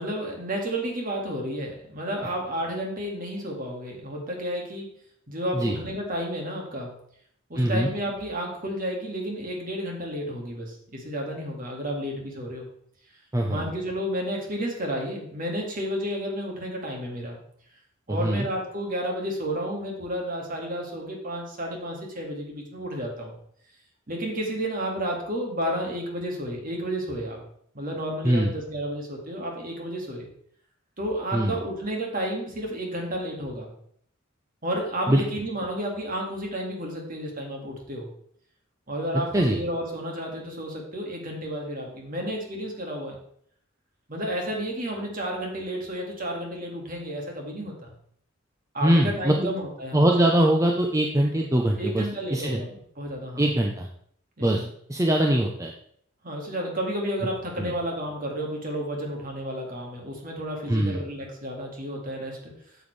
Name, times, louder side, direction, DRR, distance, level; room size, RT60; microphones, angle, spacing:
voice 1, 0.0-4.9 5.3-7.0 7.5-12.7 13.5-17.4 18.1-23.4 24.1-27.4 27.7-30.3 31.0-33.7 34.6-38.1 38.9-43.2 44.1-47.9 48.7-50.1 51.8-53.5 54.4-54.7 56.2-62.5, equal, 45° right, 0 dB, 2.0 m, -31 dB
voice 2, 7.6-7.9 13.3-13.6 18.1-18.5 28.2-28.5 31.3-31.6 35.1-35.2 39.3-39.6 48.8-49.5 49.9-52.1 52.3-52.6 53.4-53.9 54.4-54.6 54.9-55.7 57.6-57.7 60.7-61.0, right 1 dB, 15° right, 1 dB, 0.6 m, -22 dB
9.2 x 7.0 x 3.3 m, 0.65 s
head